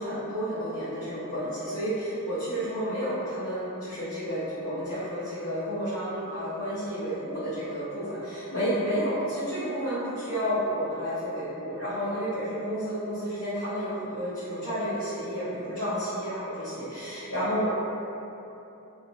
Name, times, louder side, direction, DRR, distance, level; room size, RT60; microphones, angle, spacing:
voice 1, 0.0-17.7, equal, 80° left, -15 dB, 0.9 m, -31 dB
2.5 x 2.5 x 2.7 m, 2.9 s
head